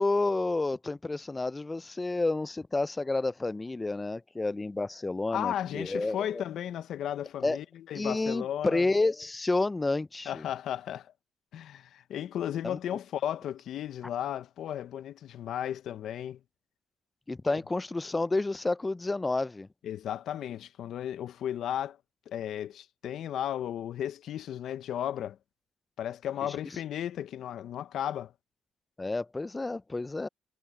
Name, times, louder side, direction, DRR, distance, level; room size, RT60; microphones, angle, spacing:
voice 1, 0.0-6.4 7.4-7.6 7.9-10.5 12.6-12.8 17.3-19.7 29.0-30.3, left 2 dB, 20° left, 0.4 m, -30 dB
voice 2, 5.3-8.9 10.3-11.1 11.5-16.4 19.8-22.0 22.3-25.4 26.0-28.3, left 10 dB, 70° left, 0.8 m, -34 dB
cardioid pair, 110°, 0 cm